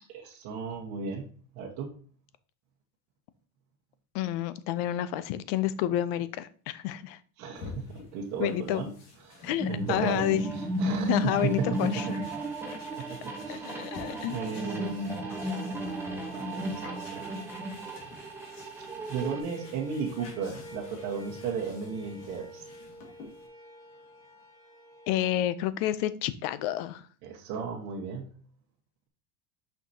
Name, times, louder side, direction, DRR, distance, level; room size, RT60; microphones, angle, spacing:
voice 1, 0.2-1.3 1.5-1.9 7.4-8.9 9.2-12.2 13.0-13.9 14.3-15.2 16.3-17.3 19.1-22.7 27.2-28.3, right 5 dB, 40° right, 1.2 m, -35 dB
voice 2, 4.1-7.2 8.4-8.9 9.4-10.4 11.1-12.1 13.5-14.5 25.1-27.1, left 12 dB, 45° left, 0.5 m, -30 dB
sound 1, 7.5-23.5, left 3 dB, 90° left, 2.2 m, -49 dB
sound 2, 9.6-19.4, right 1 dB, 5° right, 0.9 m, -34 dB
sound 3, 19.2-25.3, equal, 25° left, 3.3 m, -48 dB
5.9 x 5.8 x 2.8 m
supercardioid pair, 155°, 44 cm